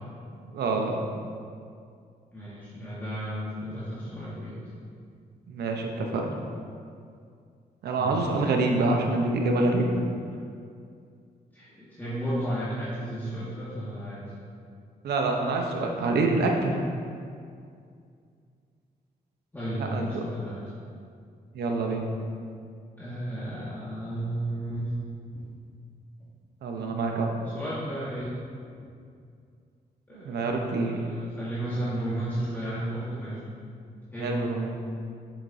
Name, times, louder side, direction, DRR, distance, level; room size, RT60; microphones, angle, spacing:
voice 1, 0.3-1.1 5.5-6.2 7.8-9.9 15.0-16.7 19.8-20.2 21.5-22.1 26.6-27.3 30.1-31.0 34.2-34.8, right 3 dB, 85° right, 2 dB, 0.9 m, -26 dB
voice 2, 2.3-4.5 8.0-8.4 11.5-14.3 15.6-15.7 19.5-20.6 23.0-25.0 25.3-25.6 27.4-28.3 28.8-28.9 30.1-33.4 34.1-34.4, right 1 dB, 10° left, -11 dB, 1.9 m, -33 dB
8.2 x 7.1 x 2.7 m, 2.3 s
cardioid pair, 80°, 16 cm